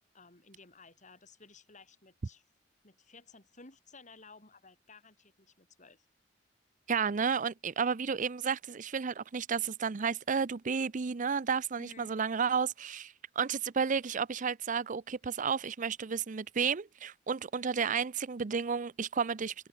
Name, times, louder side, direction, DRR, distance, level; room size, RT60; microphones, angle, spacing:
voice 1, 0.1-2.4 2.8-6.1 11.8-12.1, left 3 dB, 40° left, 7.4 m, -56 dB
voice 2, 6.9-19.5, right 6 dB, 45° right, 0.5 m, -32 dB
head